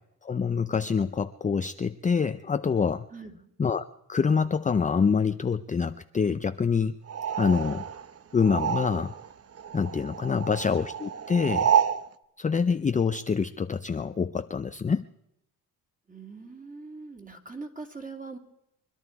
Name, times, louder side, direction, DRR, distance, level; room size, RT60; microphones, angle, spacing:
voice 1, 0.2-3.1 3.6-3.8 4.1-7.0 7.4-7.9 8.3-9.1 9.7-11.7 12.4-15.1, left 5 dB, 20° left, 9 dB, 0.5 m, -26 dB
voice 2, 3.1-3.5 16.1-18.4, right 3 dB, 20° right, 3 dB, 2.8 m, -42 dB
sound 1, 7.1-9.3 9.6-12.0, right 8 dB, 40° right, 0.8 m, -29 dB
24.5 x 11.5 x 4.7 m, 0.82 s
cardioid pair, 95°, 37 cm